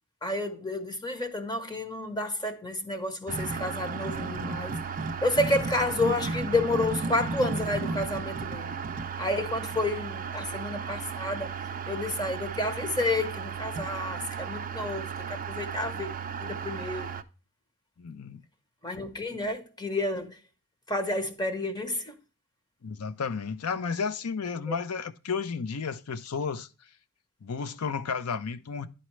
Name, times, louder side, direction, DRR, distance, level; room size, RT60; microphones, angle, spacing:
voice 1, 0.2-4.8 5.2-8.7 9.2-11.6 11.9-16.1 16.4-17.1 18.8-20.4 20.9-22.2 24.7-24.8, left 2 dB, 20° left, 0.9 m, -30 dB
sound 1, 3.3-17.2, right 5 dB, 40° right, 0.5 m, -34 dB
voice 2, 18.0-18.4 22.8-26.7 27.4-28.9, left 5 dB, 85° left, 0.6 m, -32 dB
11.5 x 4.2 x 3.1 m
head